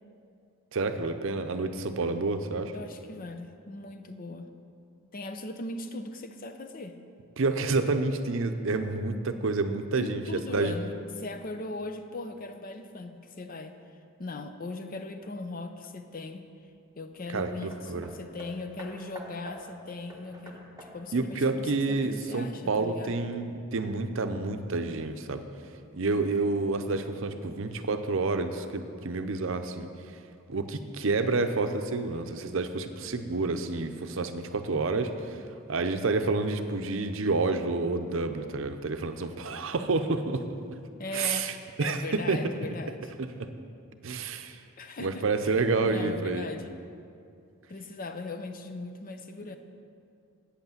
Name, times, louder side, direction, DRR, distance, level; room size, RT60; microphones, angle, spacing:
voice 1, 0.7-2.7 7.4-10.7 17.3-18.1 21.1-25.4 25.9-30.2 30.5-35.4 35.7-40.5 41.1-42.5 43.2-43.5 44.0-44.6 45.0-46.5, right 3 dB, 65° right, 8 dB, 0.6 m, -29 dB
voice 2, 2.7-4.5 5.1-7.0 10.0-13.8 14.2-16.4 17.0-23.1 40.9-41.4 41.8-43.1 44.8-45.5 45.8-46.7 47.7-49.6, left 2 dB, 40° left, 7 dB, 0.6 m, -39 dB
Hammer, 17.7-22.4 23.3-23.4, right 1 dB, 15° right, 1.3 m, -49 dB
8.5 x 8.1 x 7.1 m, 2.4 s
head